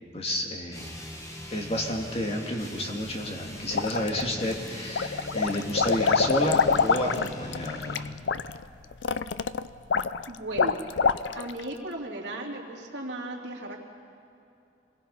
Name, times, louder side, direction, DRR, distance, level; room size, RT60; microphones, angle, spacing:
voice 1, 0.1-0.9 1.5-7.8, left 1 dB, 35° left, 1 dB, 2.3 m, -30 dB
sound 1, 0.7-8.2, left 1 dB, 20° left, 1.9 m, -41 dB
sound 2, 3.7-4.5 4.9-11.6, left 5 dB, 80° left, 0.6 m, -26 dB
voice 2, 10.3-10.8 11.4-13.8, right 1 dB, 70° right, -2 dB, 3.2 m, -36 dB
26.5 x 21.0 x 5.5 m, 2.6 s
head